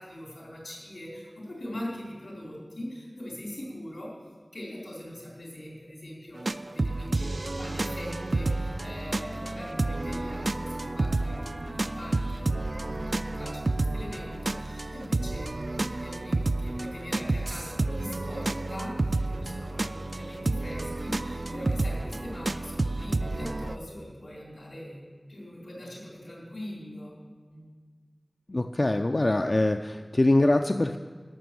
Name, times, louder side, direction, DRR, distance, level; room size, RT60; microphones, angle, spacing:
voice 1, 0.0-4.1 4.5-25.0 25.3-27.1 27.5-27.7, equal, 85° left, -4 dB, 4.1 m, -42 dB
sound 1, 6.4-23.8, right 2 dB, 70° right, 0.3 m, -30 dB
Wind instrument woodwind instrument, 7.5-14.9, equal, 20° right, 0.6 m, -43 dB
voice 2, 28.5-31.0, left 2 dB, 55° left, 6 dB, 0.4 m, -23 dB
12.5 x 6.1 x 7.8 m, 1.6 s
wide cardioid pair, 40°, 0 cm